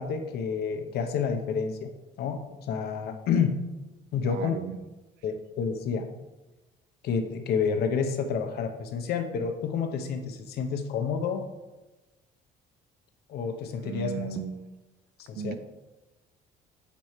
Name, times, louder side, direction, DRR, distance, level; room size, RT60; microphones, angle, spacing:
voice 1, 0.0-3.7 4.1-4.6 5.2-6.1 7.0-11.5 13.3-14.4 15.3-15.6, left 6 dB, 70° left, 6 dB, 0.8 m, -29 dB
voice 2, 4.1-4.8 13.8-14.7 15.3-15.5, right 9 dB, 85° right, 12 dB, 0.5 m, -36 dB
8.5 x 3.1 x 4.3 m, 1.1 s
cardioid pair, 110°, 17 cm